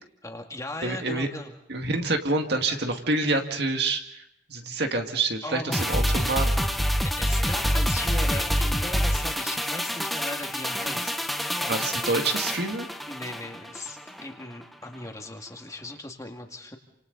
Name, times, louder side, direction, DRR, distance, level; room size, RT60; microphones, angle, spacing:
voice 1, 0.2-1.5 1.8-1.9 5.4-5.8 7.0-11.2 11.8-11.9 13.1-16.8, left 2 dB, 20° left, 3 dB, 2.2 m, -38 dB
voice 2, 0.8-1.3 1.7-4.0 4.5-6.5 11.7-12.9, right 2 dB, 60° right, 4 dB, 2.0 m, -27 dB
sound 1, 5.7-14.3 14.6-14.7, equal, ahead, 1.0 m, -27 dB
29.0 x 27.0 x 4.0 m, 0.77 s
head